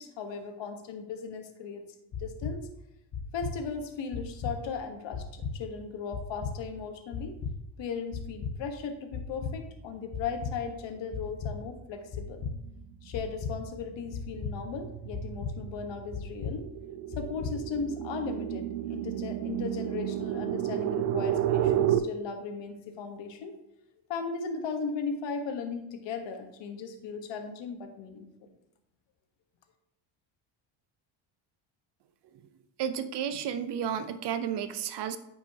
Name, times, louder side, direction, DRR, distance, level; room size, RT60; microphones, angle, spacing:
voice 1, 0.0-1.8 2.2-2.7 3.3-7.4 7.8-12.4 13.0-16.7 17.2-23.6 24.1-28.3, left 5 dB, 60° left, 6 dB, 1.3 m, -37 dB
sound 1, 2.1-2.5 3.1-3.5 4.1-4.5 5.1-5.5 6.1-6.5 7.1-7.5 8.1-8.5 9.1-9.5 10.1-10.5 11.1-11.5 12.1-12.5 13.1-13.5 14.1-14.5 15.1-15.5 16.1-16.5 17.1-17.5, left 5 dB, 40° left, 1.1 m, -34 dB
sound 2, 12.3-12.7 13.1-22.0, right 11 dB, 90° right, 0.6 m, -31 dB
voice 2, 32.8-35.2, right 8 dB, 55° right, 12 dB, 0.8 m, -32 dB
9.0 x 5.5 x 2.8 m, 0.84 s
supercardioid pair, 90°, 49 cm